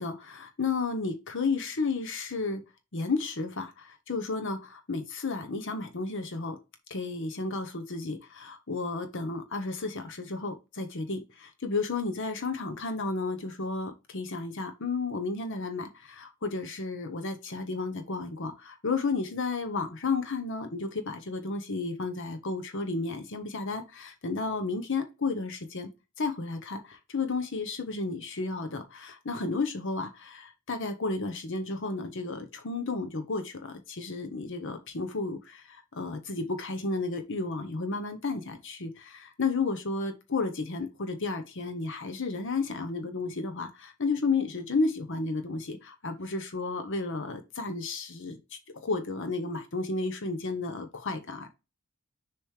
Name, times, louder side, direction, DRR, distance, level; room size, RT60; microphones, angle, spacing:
voice 1, 0.0-2.6 2.9-6.6 6.9-25.9 26.2-51.5, left 3 dB, 60° left, 1.0 m, -32 dB
6.7 x 3.1 x 4.9 m
head